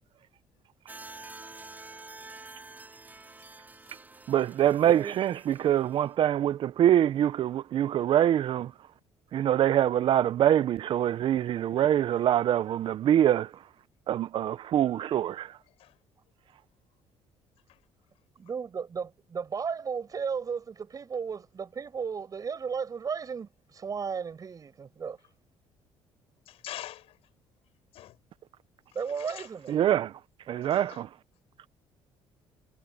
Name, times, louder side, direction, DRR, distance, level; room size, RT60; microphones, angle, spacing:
sound 1, 0.9-6.2, right 3 dB, 15° right, 5.8 m, -48 dB
voice 1, 4.3-8.7 9.3-13.5 14.1-15.5 29.7-30.1 30.5-31.1, right 11 dB, 55° right, 0.8 m, -24 dB
voice 2, 4.8-5.1 18.4-25.2 28.9-29.7, right 6 dB, 35° right, 5.8 m, -34 dB
voice 3, 26.5-27.2 27.9-28.2 29.1-29.5 30.6-31.0, left 13 dB, 70° left, 5.4 m, -44 dB
cardioid pair, 110°, 10 cm